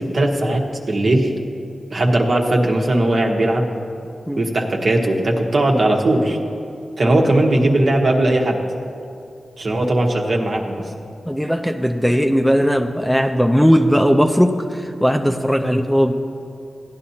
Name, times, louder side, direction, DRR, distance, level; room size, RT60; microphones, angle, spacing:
voice 1, 0.1-1.3 1.9-3.7 4.4-6.4 7.0-8.6 9.6-10.8, right 1 dB, 60° right, 1 dB, 1.3 m, -18 dB
voice 2, 11.3-16.1, equal, 5° left, 4 dB, 0.6 m, -17 dB
16.0 x 10.5 x 2.8 m, 2.5 s
cardioid pair, 55°, 0 cm